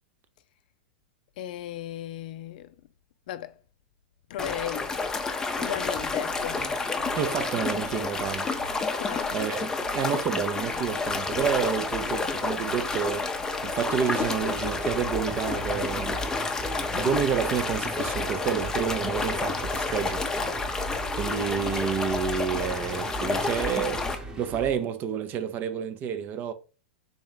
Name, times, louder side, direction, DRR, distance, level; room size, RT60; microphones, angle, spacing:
voice 1, 1.4-2.7 3.3-3.6 4.3-5.0 5.6-6.7 9.0-9.3, left 12 dB, 65° left, 0.4 m, -36 dB
sound 1, 4.4-24.2, left 3 dB, 10° left, 0.6 m, -30 dB
sound 2, 6.3-16.0, right 3 dB, 80° right, 1.0 m, -48 dB
voice 2, 7.2-8.5 9.3-13.4 13.6-16.2 16.9-20.2 21.2-24.1 24.4-26.5, right 8 dB, 35° right, 0.5 m, -29 dB
sound 3, 14.4-24.8, right 1 dB, 15° right, 0.9 m, -38 dB
3.5 x 3.0 x 3.9 m
hypercardioid pair, 105°, 5 cm